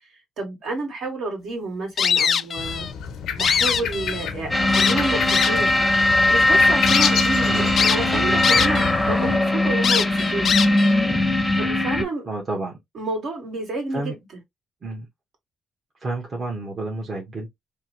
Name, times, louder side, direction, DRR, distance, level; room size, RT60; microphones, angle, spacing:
voice 1, 0.4-2.9 3.4-5.8 6.3-10.5 11.6-12.3 12.9-14.4, right 2 dB, 65° right, 1.9 m, -30 dB
sound 1, 2.0-2.9 3.2-4.3 4.7-5.7 6.3-6.4 6.9-7.1 7.8-8.9 9.2-9.3 9.8-10.9, left 7 dB, 55° left, 0.3 m, -22 dB
sound 2, 2.6-9.4, left 7 dB, 80° left, 0.8 m, -30 dB
sound 3, 4.5-12.1, left 1 dB, 5° left, 0.8 m, -20 dB
voice 2, 12.3-12.8 13.9-14.1 14.8-15.1 16.0-17.5, right 2 dB, 40° right, 1.2 m, -30 dB
3.4 x 2.2 x 3.0 m
cardioid pair, 90°, 0 cm